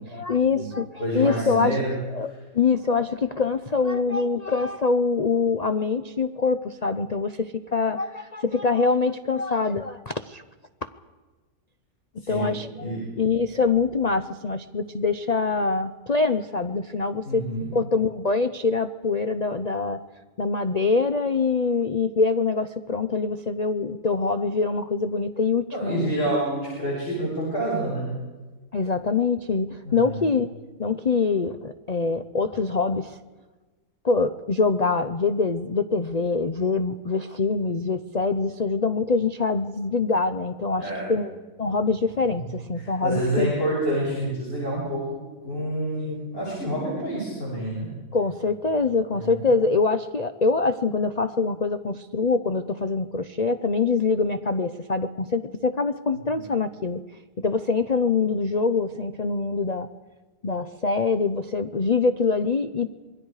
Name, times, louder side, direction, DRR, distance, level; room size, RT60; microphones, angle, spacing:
voice 1, 0.1-1.8 2.1-10.4 12.3-17.4 17.7-20.0 20.4-26.3 28.7-30.5 30.8-33.2 34.0-43.5 48.1-57.0 57.4-59.9 60.4-62.9, left 4 dB, 80° left, 10 dB, 0.3 m, -24 dB
voice 2, 1.0-1.9 12.2-12.5 12.8-13.0 17.2-17.6 25.7-28.1 29.8-30.2 40.8-41.1 42.3-42.4 42.8-45.0 45.4-47.9 49.1-49.4 56.3-56.4, right 1 dB, 35° left, -6 dB, 6.5 m, -28 dB
27.0 x 22.0 x 4.9 m, 1.3 s
omnidirectional pair, 1.8 m